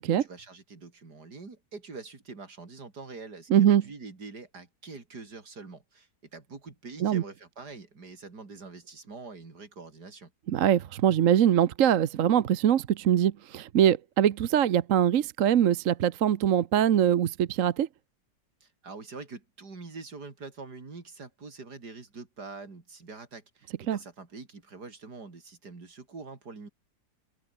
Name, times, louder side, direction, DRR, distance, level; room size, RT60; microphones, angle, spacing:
voice 1, 0.0-10.3 18.6-26.7, right 4 dB, 75° right, 4.1 m, -45 dB
voice 2, 3.5-3.8 7.0-7.2 10.5-17.9 23.9-24.0, right 10 dB, 60° right, 1.1 m, -23 dB
open air
omnidirectional pair, 1.7 m